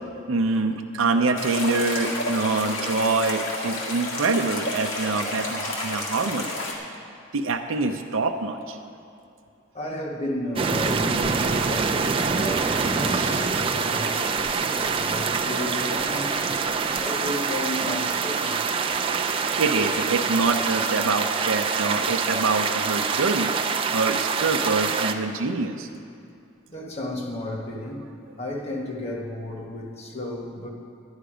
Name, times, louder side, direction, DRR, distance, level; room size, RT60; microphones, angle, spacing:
voice 1, 0.3-6.5 7.3-8.8 13.1-13.4 19.6-23.5 23.9-25.9, right 3 dB, 75° right, 4 dB, 0.6 m, -25 dB
sound 1, 1.4-6.7, left 1 dB, 70° left, 1.9 m, -30 dB
voice 2, 9.7-16.5 17.0-18.6 18.9-19.0 26.7-28.1 28.4-30.7, left 1 dB, 30° left, 0 dB, 1.2 m, -33 dB
sound 2, 10.6-25.1, right 5 dB, 25° right, 0.4 m, -25 dB
11.0 x 10.5 x 5.0 m, 2.5 s
head